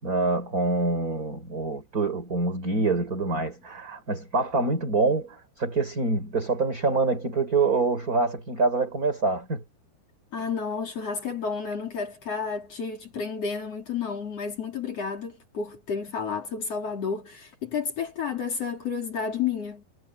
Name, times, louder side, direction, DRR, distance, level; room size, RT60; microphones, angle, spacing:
voice 1, 0.0-9.6, right 3 dB, 20° right, 4.7 m, -26 dB
voice 2, 10.3-19.8, left 6 dB, 40° left, 3.2 m, -31 dB
omnidirectional pair, 5.2 m